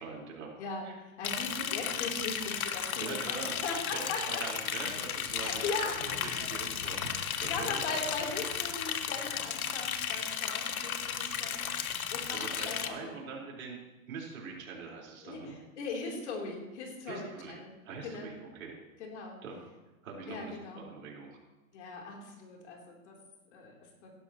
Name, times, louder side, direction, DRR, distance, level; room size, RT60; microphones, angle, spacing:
voice 1, 0.0-0.5 0.8-1.0 3.0-3.6 3.9-8.2 12.3-13.8 14.1-15.6 17.1-18.8 19.4-19.6 20.0-21.4, right 4 dB, 75° right, -2 dB, 4.5 m, -43 dB
voice 2, 0.6-4.4 5.4-6.5 7.2-13.1 15.2-17.7 18.0-18.3 19.0-19.4 20.3-20.8 21.7-23.2 23.5-24.1, left 3 dB, 55° left, 0 dB, 3.5 m, -39 dB
Liquid, 1.2-12.9, left 8 dB, 85° left, 1.3 m, -34 dB
16.0 x 11.5 x 3.0 m, 1.1 s
hypercardioid pair, 165°, 42 cm